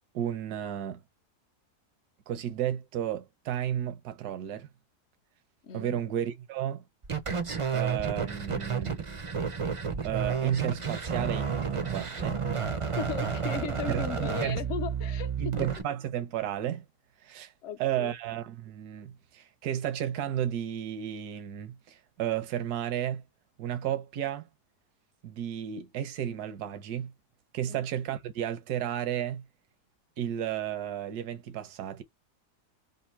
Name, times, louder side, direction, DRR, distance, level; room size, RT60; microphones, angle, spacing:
voice 1, 0.1-1.0 2.3-4.7 5.7-6.8 7.7-9.0 10.0-12.4 13.9-14.1 14.4-14.6 15.4-16.8 17.2-17.5 17.8-23.2 23.6-24.4 25.2-27.1 27.5-29.4 30.2-32.0, right 10 dB, 80° right, 1.2 m, -33 dB
voice 2, 5.6-6.0 13.0-15.4 17.6-18.2 27.7-27.9, left 7 dB, 60° left, 0.8 m, -37 dB
sound 1, 7.0-15.8, right 6 dB, 50° right, 0.4 m, -31 dB
3.5 x 2.6 x 4.2 m
omnidirectional pair, 1.6 m